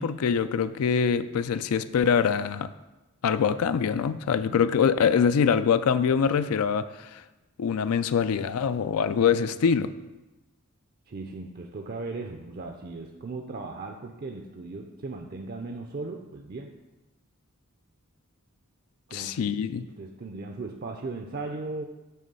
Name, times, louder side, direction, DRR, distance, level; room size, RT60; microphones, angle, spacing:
voice 1, 0.0-2.7 3.2-7.2 7.6-9.9 19.1-19.8, left 6 dB, 75° left, 13 dB, 0.4 m, -24 dB
voice 2, 11.1-16.7 19.1-19.5 19.8-21.8, right 3 dB, 45° right, 3 dB, 0.5 m, -37 dB
9.1 x 3.1 x 6.7 m, 1.1 s
head